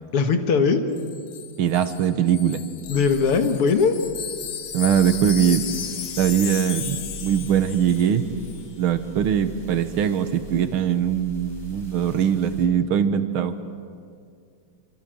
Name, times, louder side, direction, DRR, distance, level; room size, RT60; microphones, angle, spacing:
voice 1, 0.1-0.8 2.9-4.0, left 5 dB, 85° left, 7 dB, 2.5 m, -20 dB
Wind chime, 1.0-8.2 8.4-8.6, left 8 dB, 70° left, 2.1 m, -35 dB
voice 2, 1.6-2.6 4.7-5.7 6.2-8.3 8.8-13.5, right 8 dB, 75° right, 10 dB, 2.0 m, -21 dB
sound 1, 2.8-12.7, equal, 30° left, 5.1 m, -43 dB
27.0 x 24.5 x 7.8 m, 2.3 s
omnidirectional pair, 2.4 m